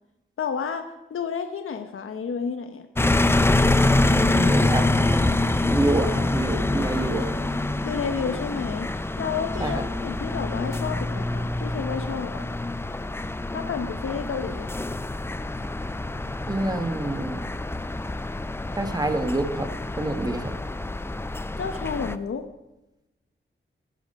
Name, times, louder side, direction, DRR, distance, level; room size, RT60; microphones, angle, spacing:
voice 1, 0.4-0.8 1.1-2.9 7.8-12.5 13.5-14.7 21.6-22.4, left 6 dB, 85° left, 7 dB, 0.8 m, -31 dB
sound 1, 3.0-22.1, left 2 dB, 10° left, 0.4 m, -26 dB
voice 2, 4.0-7.4 9.6-9.8 16.5-17.4 18.8-19.7 20.0-20.5, right 2 dB, 20° right, 7 dB, 1.2 m, -27 dB
14.5 x 12.0 x 5.3 m, 0.99 s
wide cardioid pair, 165°, 21 cm